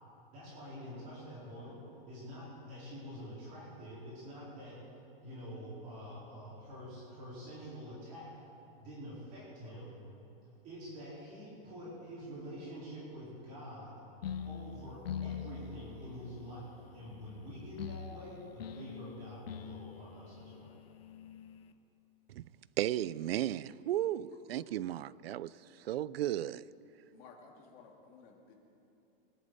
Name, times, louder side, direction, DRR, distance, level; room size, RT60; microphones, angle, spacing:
voice 1, 0.3-1.8 2.1-4.7 5.2-8.3 8.8-9.9 10.6-13.9 14.5-20.7, equal, 25° right, 4.4 m, -47 dB
sound 1, 14.2-21.7, left 7 dB, 90° left, 1.1 m, -44 dB
voice 2, 22.8-25.5 25.8-26.7, right 13 dB, 90° right, 0.6 m, -34 dB
voice 3, 24.3-25.6 27.1-28.5, left 4 dB, 30° left, 2.1 m, -56 dB
24.0 x 11.0 x 4.1 m
supercardioid pair, 170°, 29 cm